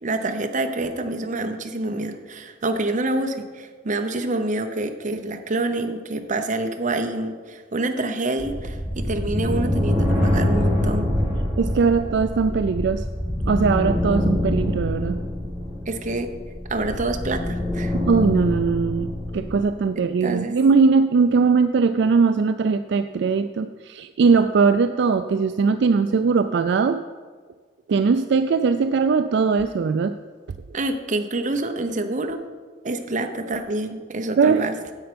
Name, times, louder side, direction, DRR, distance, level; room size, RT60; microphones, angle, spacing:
voice 1, 0.0-11.1 15.9-16.3 16.7-17.9 20.2-20.6 30.7-32.4 32.8-34.7, right 2 dB, 40° right, 6 dB, 0.8 m, -27 dB
sound 1, 8.4-19.6, left 1 dB, 15° right, 3.2 m, -25 dB
voice 2, 11.6-13.0 13.4-15.2 17.9-27.0 27.9-30.1 34.4-34.6, right 5 dB, 65° right, 9 dB, 0.4 m, -20 dB
10.0 x 7.8 x 5.2 m, 1.5 s
head